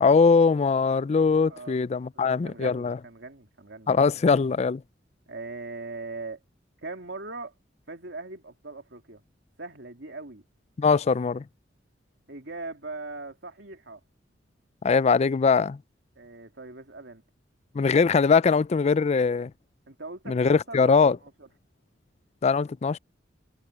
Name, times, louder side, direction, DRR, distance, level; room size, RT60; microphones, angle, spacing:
voice 1, 0.0-3.0 3.9-4.8 10.8-11.4 14.8-15.8 17.7-19.5 20.3-21.2 22.4-23.0, left 5 dB, 35° left, 0.4 m, -21 dB
voice 2, 2.1-3.9 5.3-6.4 6.8-7.5 7.9-9.2 9.6-10.4 12.3-14.0 16.2-17.2 19.9-20.9 21.2-21.3, right 3 dB, 75° right, 3.0 m, -40 dB
head